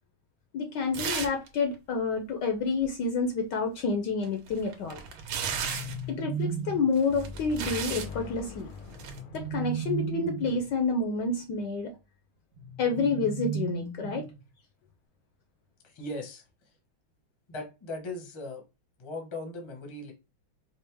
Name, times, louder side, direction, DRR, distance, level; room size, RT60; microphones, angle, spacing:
voice 1, 0.5-5.0 6.1-8.7 9.3-11.9 12.8-14.3, left 4 dB, 70° left, 1.1 m, -29 dB
sound 1, 0.9-1.5 1.7-1.8 4.2-6.0 7.0-8.1 8.9-9.2, right 6 dB, 80° right, 1.6 m, -34 dB
sound 2, 5.1-7.0 8.8-10.7 12.5-14.5, right 6 dB, 60° right, 1.3 m, -36 dB
sound 3, 7.1-10.8, left 4 dB, 85° left, 1.6 m, -43 dB
voice 2, 15.8-16.4 17.5-18.6 19.0-20.1, left 2 dB, 25° left, 0.6 m, -38 dB
5.1 x 2.0 x 3.3 m
omnidirectional pair, 2.3 m